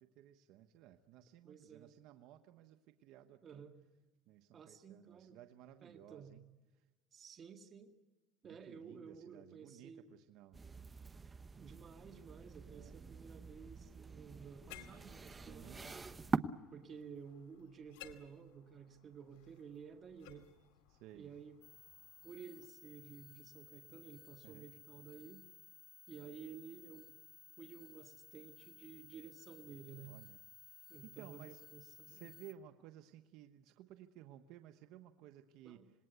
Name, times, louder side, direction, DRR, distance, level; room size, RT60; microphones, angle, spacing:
voice 1, 0.0-3.6 4.3-6.4 6.8-6.9 8.4-10.6 12.7-13.0 15.5-15.8 20.9-21.3 24.4-24.7 30.0-30.4 30.7-31.6 32.1-35.8, right 12 dB, 75° right, 7 dB, 1.2 m, -57 dB
voice 2, 1.4-1.9 3.4-3.8 4.5-5.4 5.8-6.4 7.1-7.9 8.4-10.1 11.6-16.0 16.7-20.5 21.1-21.5 22.2-25.5 26.1-27.1 27.6-30.2 30.9-32.4 35.6-35.9, right 6 dB, 35° right, 5 dB, 2.0 m, -53 dB
sound 1, 10.5-16.4, right 4 dB, 20° right, 1.0 m, -44 dB
sound 2, 14.7-22.7, left 12 dB, 90° left, 2.3 m, -61 dB
sound 3, 21.6-32.5, left 6 dB, 30° left, 1.6 m, -59 dB
27.0 x 20.0 x 8.2 m, 1.1 s
cardioid pair, 115°, 0 cm